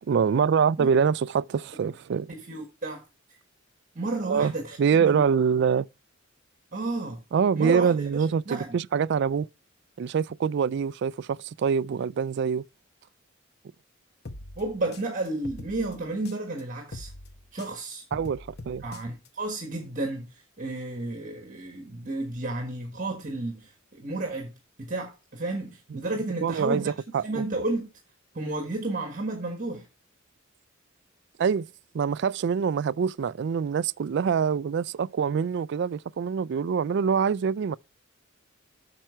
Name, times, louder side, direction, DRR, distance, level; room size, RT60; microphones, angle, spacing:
voice 1, 0.1-2.3 4.3-4.5 4.8-5.9 7.3-9.5 10.0-12.6 18.1-18.8 26.4-26.8 27.1-27.4 31.4-31.7 31.9-37.8, right 6 dB, 55° right, 0.3 m, -25 dB
voice 2, 2.3-3.0 3.9-5.2 6.7-7.2 7.5-8.8 14.6-17.1 17.5-18.0 18.8-26.9 27.2-27.9 28.3-29.9, right 2 dB, 40° right, 1.5 m, -32 dB
sound 1, 14.2-16.6 16.9-19.3, left 2 dB, 50° left, 0.9 m, -43 dB
8.9 x 5.9 x 4.4 m
head